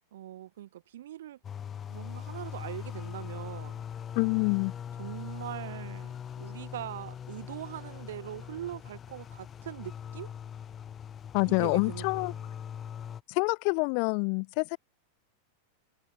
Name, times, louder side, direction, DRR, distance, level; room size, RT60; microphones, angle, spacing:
voice 1, 0.1-1.4 1.9-3.8 5.0-10.3 11.5-12.5, right 13 dB, 60° right, 4.2 m, -42 dB
sound 1, 1.4-13.2, left 8 dB, 25° left, 4.5 m, -41 dB
voice 2, 4.2-4.7 11.3-12.3 13.3-14.8, left 40 dB or more, 45° left, 0.5 m, -27 dB
figure-of-eight pair, 90°, 0 cm